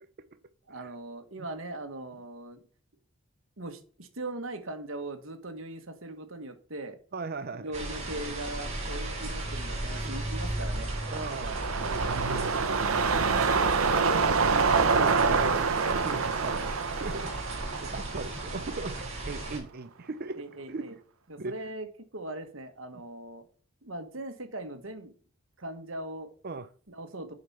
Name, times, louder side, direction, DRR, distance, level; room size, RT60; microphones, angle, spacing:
voice 1, 0.7-2.6 3.6-7.0 7.5-10.9 13.9-15.7 20.3-20.9 21.3-21.9 22.1-23.4 23.8-25.1 25.6-26.3 26.9-27.3, right 1 dB, 65° right, 1.4 m, -39 dB
voice 2, 7.1-7.7 11.1-11.6 11.9-13.3 15.9-21.0 21.4-21.5 26.4-26.7, right 3 dB, 45° right, 0.6 m, -39 dB
sound 1, 7.7-19.6, right 1 dB, 30° right, 3.3 m, -36 dB
sound 2, 10.6-19.1 19.4-19.5, right 5 dB, 85° right, 0.8 m, -27 dB
7.8 x 5.3 x 5.6 m
head